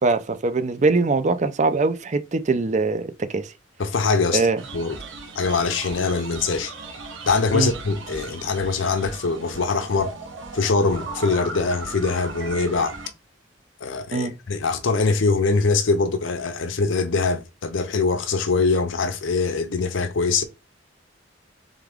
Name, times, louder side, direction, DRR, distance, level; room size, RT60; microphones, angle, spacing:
voice 1, 0.0-3.5 4.3-4.6 7.5-7.7 14.1-14.3, right 3 dB, 40° right, 0.5 m, -22 dB
voice 2, 3.8-4.5 4.7-5.0 5.4-6.7 7.3-10.1 10.5-12.9 13.8-20.4, left 4 dB, 80° left, 0.6 m, -23 dB
sound 1, 4.6-13.1, right 3 dB, 90° right, 1.1 m, -37 dB
3.6 x 3.5 x 3.4 m
head